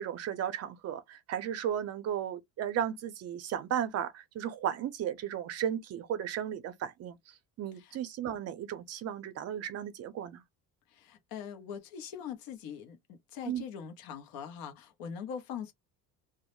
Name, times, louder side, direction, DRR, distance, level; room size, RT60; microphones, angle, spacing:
voice 1, 0.0-7.2 7.6-10.4 13.5-13.6, right 9 dB, 45° right, 0.5 m, -35 dB
voice 2, 10.9-15.7, left 8 dB, 70° left, 0.8 m, -42 dB
2.2 x 2.0 x 2.9 m
cardioid pair, 145°, 36 cm